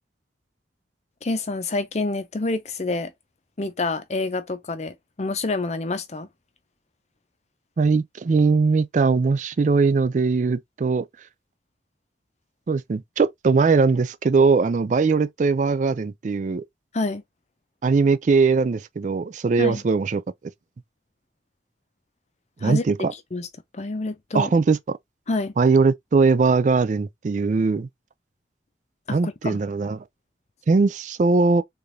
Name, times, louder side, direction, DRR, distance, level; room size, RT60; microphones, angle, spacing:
voice 1, 1.2-3.1 3.6-6.3 16.9-17.2 19.6-19.8 22.6-23.5 23.7-24.5 25.3-25.5 29.1-29.6, left 3 dB, 35° left, 0.6 m, -28 dB
voice 2, 7.8-11.1 12.7-16.6 17.8-20.2 22.6-23.1 24.3-24.8 25.6-27.9 29.1-30.0 30.7-31.6, right 4 dB, 40° right, 0.3 m, -20 dB
3.5 x 3.4 x 2.7 m
head